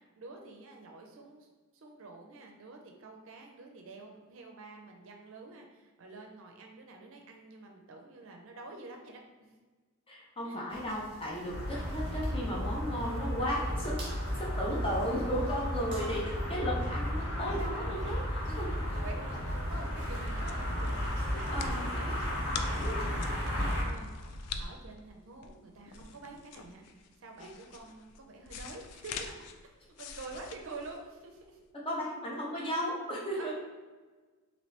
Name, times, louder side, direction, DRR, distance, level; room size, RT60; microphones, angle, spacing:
voice 1, 0.0-1.5 1.7-9.5 10.4-10.7 15.9-16.2 18.9-29.3 29.6-29.7 30.0-31.6 33.3-33.5, right 3 dB, 60° right, 2 dB, 0.5 m, -48 dB
voice 2, 10.1-14.0 14.4-18.7 21.5-22.2 31.8-33.5, equal, 25° left, -4 dB, 0.7 m, -35 dB
sound 1, 10.7-16.2, right 1 dB, 25° right, 0.9 m, -50 dB
sound 2, 11.5-23.8, equal, 55° left, 0.9 m, -33 dB
sound 3, 20.0-31.6, left 5 dB, 90° left, 0.3 m, -45 dB
2.9 x 2.7 x 3.1 m, 1.3 s
head